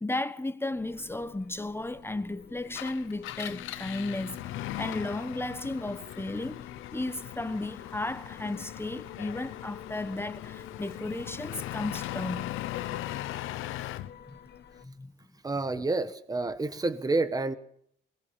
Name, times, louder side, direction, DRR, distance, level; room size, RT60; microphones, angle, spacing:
voice 1, 0.0-6.6 6.9-12.4 14.3-14.4 14.8-15.1, left 2 dB, 10° left, 1.1 m, -34 dB
sound 1, 0.7-14.8, left 9 dB, 60° left, 1.9 m, -49 dB
Engine, 2.6-14.1, left 14 dB, 90° left, 0.9 m, -39 dB
voice 2, 15.4-17.6, right 3 dB, 20° right, 1.3 m, -29 dB
21.0 x 19.5 x 7.2 m
cardioid pair, 90°, 20 cm